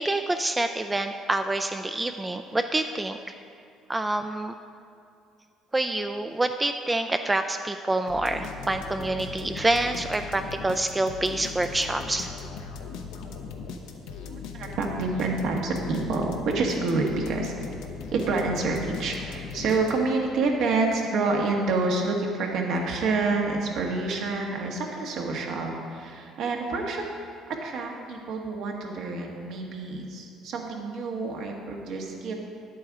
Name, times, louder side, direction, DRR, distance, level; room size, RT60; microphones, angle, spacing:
voice 1, 0.0-3.2 3.9-4.5 5.7-12.3, right 2 dB, 15° right, 7 dB, 0.4 m, -27 dB
sound 1, 8.1-20.3, left 5 dB, 90° left, 0.8 m, -39 dB
voice 2, 14.3-17.5 18.1-27.0 27.6-32.3, right 3 dB, 70° right, 1 dB, 1.4 m, -28 dB
10.5 x 8.6 x 3.6 m, 2.4 s
cardioid pair, 105°, 0 cm